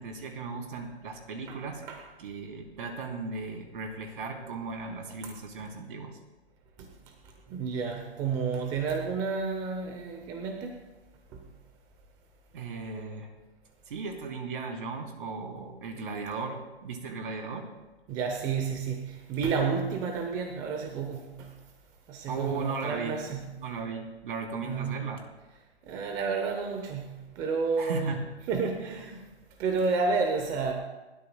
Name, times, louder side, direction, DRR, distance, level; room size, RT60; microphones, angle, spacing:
voice 1, 0.0-1.8 2.2-6.2 12.5-13.3 13.9-17.7 22.3-25.2 27.8-28.3, right 4 dB, 50° right, 2 dB, 3.2 m, -36 dB
voice 2, 7.5-10.7 11.3-11.4 18.1-21.5 22.1-23.5 24.6-25.0 25.9-28.1 28.5-29.2 29.6-30.7, right 5 dB, 10° right, 4 dB, 0.7 m, -31 dB
29.0 x 12.5 x 2.2 m, 1.1 s
hypercardioid pair, 155°, 33 cm